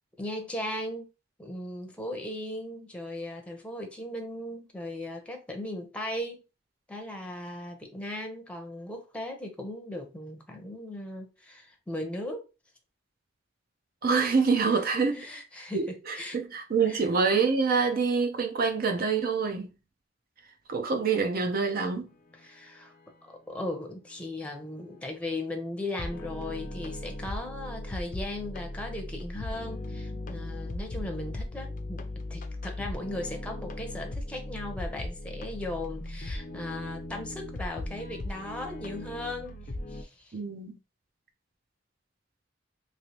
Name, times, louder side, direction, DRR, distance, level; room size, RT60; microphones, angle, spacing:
voice 1, 0.2-1.1 1.4-6.4 6.9-12.4 15.1-16.4 16.9-17.1 22.4-22.9 23.2-32.0 32.3-39.6 39.9-40.4, left 1 dB, 5° left, 0.7 m, -37 dB
voice 2, 14.0-15.3 15.7-19.7 20.7-22.1 40.3-40.8, right 5 dB, 50° right, 0.6 m, -26 dB
sound 1, 24.5-25.1 26.0-40.0, left 1 dB, 45° left, 0.5 m, -38 dB
3.1 x 3.0 x 2.9 m
head